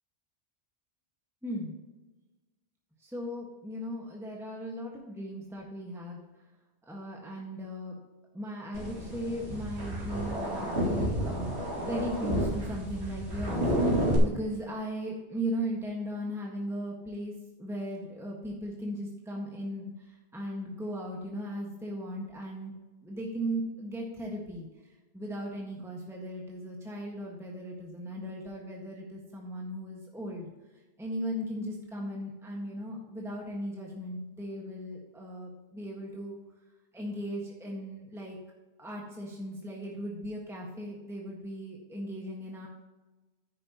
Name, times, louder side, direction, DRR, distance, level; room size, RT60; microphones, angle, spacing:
voice 1, 1.4-1.8 3.0-6.2 6.9-7.9 8.3-22.7 23.0-24.7 25.1-30.5 31.0-36.4 36.9-38.4 38.8-42.7, equal, ahead, -2 dB, 1.5 m, -37 dB
sound 1, 8.7-14.2, right 1 dB, 70° right, 2.8 m, -31 dB
10.0 x 9.8 x 2.9 m, 1.2 s
omnidirectional pair, 1.2 m